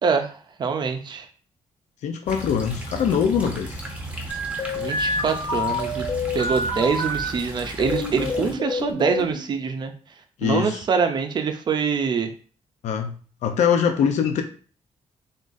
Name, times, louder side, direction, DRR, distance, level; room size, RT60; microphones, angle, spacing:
voice 1, 0.0-1.3 4.8-6.0 6.3-9.9 10.4-12.3, right 5 dB, 40° right, 7 dB, 0.5 m, -24 dB
voice 2, 2.0-3.8 10.4-10.8 12.8-13.1 13.4-14.4, left 7 dB, 90° left, 5 dB, 0.6 m, -22 dB
sound 1, 2.3-8.5, right 1 dB, 10° right, 0.8 m, -35 dB
sound 2, 4.3-7.3 7.8-9.4, left 2 dB, 55° left, 1.6 m, -27 dB
3.8 x 3.7 x 2.6 m, 0.40 s
wide cardioid pair, 170°, 12 cm